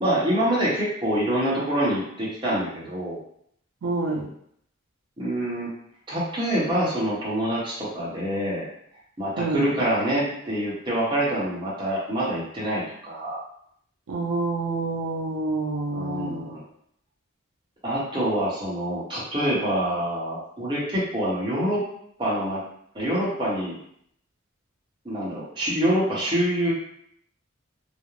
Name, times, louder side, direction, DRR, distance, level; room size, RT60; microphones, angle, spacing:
voice 1, 0.0-3.2 5.2-5.7 6.1-8.7 9.2-13.4 15.9-16.6 17.8-21.8 22.2-22.6 22.9-23.7 25.0-26.7, right 1 dB, 20° right, -7 dB, 0.8 m, -26 dB
voice 2, 3.8-4.3 9.4-9.7 14.1-16.5, right 3 dB, 80° right, -1 dB, 0.5 m, -27 dB
2.4 x 2.0 x 3.0 m, 0.68 s
head